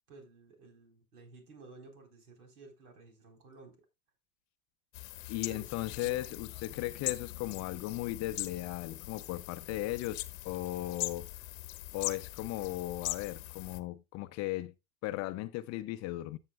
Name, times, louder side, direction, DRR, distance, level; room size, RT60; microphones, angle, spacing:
voice 1, 0.1-3.8 5.4-5.7 6.0-6.2 6.5-6.7, right 3 dB, 75° right, 4.2 m, -54 dB
sound 1, 4.9-13.8, left 18 dB, 60° left, 1.0 m, -41 dB
voice 2, 5.3-11.3 11.9-14.7 15.0-16.4, left 16 dB, 35° left, 0.6 m, -37 dB
13.5 x 7.2 x 2.3 m
hypercardioid pair, 95°, 45 cm